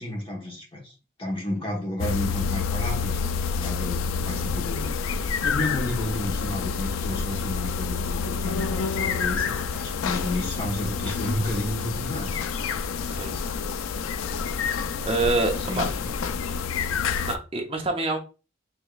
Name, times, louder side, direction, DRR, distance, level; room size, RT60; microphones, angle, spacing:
voice 1, 0.0-3.2 3.5-5.1 5.4-12.4 15.5-16.1, left 1 dB, 25° left, 1.2 m, -32 dB
sound 1, 2.0-17.4, left 5 dB, 90° left, 0.4 m, -28 dB
voice 2, 15.0-15.9 17.2-18.2, right 2 dB, 30° right, 0.7 m, -26 dB
4.9 x 3.0 x 2.4 m
head